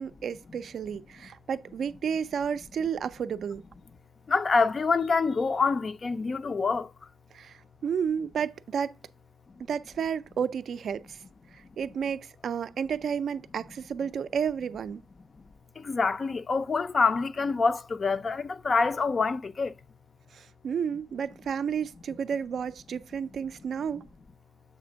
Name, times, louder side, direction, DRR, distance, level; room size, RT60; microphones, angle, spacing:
voice 1, 0.0-3.6 7.3-9.0 9.6-11.2 11.5-15.0 20.3-24.0, right 7 dB, 55° right, 0.4 m, -32 dB
voice 2, 4.3-6.9 15.8-19.7, left 4 dB, 30° left, 0.4 m, -26 dB
7.3 x 3.4 x 5.0 m
wide cardioid pair, 170°, 0 cm